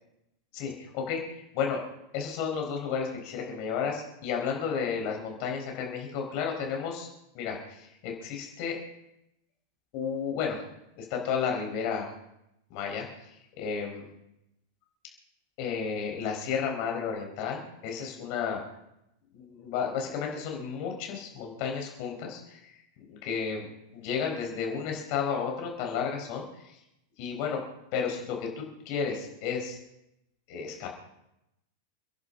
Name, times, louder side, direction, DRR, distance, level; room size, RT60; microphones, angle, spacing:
voice 1, 0.5-1.9 2.1-7.1 7.3-8.8 9.9-10.6 11.0-12.1 12.7-14.1 15.6-18.6 19.3-22.7 23.1-26.8 27.2-27.6 27.9-29.8 30.5-30.9, left 6 dB, 45° left, 1 dB, 4.3 m, -32 dB
29.5 x 11.0 x 3.7 m, 0.84 s
figure-of-eight pair, 90°, 0 cm